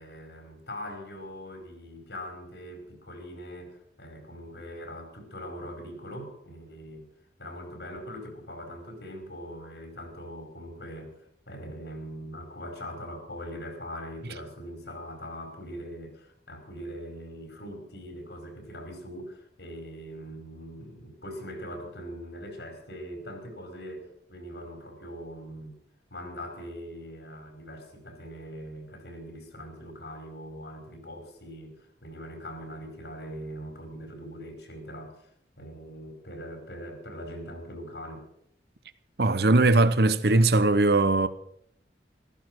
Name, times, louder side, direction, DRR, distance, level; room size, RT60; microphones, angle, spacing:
voice 1, 0.0-7.1 7.4-25.7 26.1-35.3 35.6-38.3, equal, 75° left, 5.1 m, -41 dB
voice 2, 39.2-41.3, right 2 dB, 65° right, 0.9 m, -20 dB
15.0 x 14.0 x 6.2 m
head